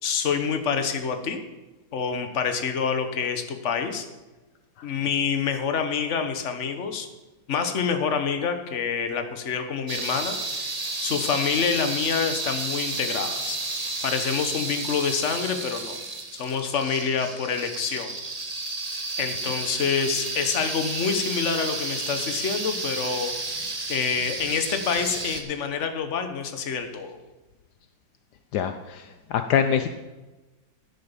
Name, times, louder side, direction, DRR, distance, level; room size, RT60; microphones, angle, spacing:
voice 1, 0.0-1.4 1.9-4.1 4.8-7.1 7.5-13.6 14.0-16.0 16.3-18.1 19.2-27.2, left 6 dB, 45° left, 7 dB, 1.3 m, -27 dB
sound 1, 9.9-25.4, right 3 dB, 25° right, 1.1 m, -32 dB
voice 2, 28.5-29.9, left 8 dB, 75° left, 9 dB, 1.2 m, -25 dB
10.5 x 8.0 x 7.3 m, 1.1 s
omnidirectional pair, 1.9 m